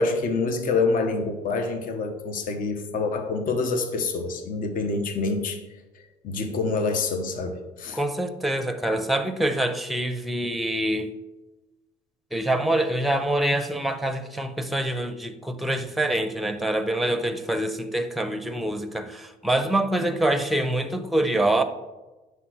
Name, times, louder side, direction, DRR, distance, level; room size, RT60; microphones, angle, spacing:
voice 1, 0.0-5.6 5.9-8.0, left 3 dB, 55° left, 1.1 m, -26 dB
voice 2, 7.9-11.1 12.3-21.6, right 1 dB, ahead, 0.7 m, -25 dB
9.4 x 3.4 x 6.3 m
cardioid pair, 110°, 17 cm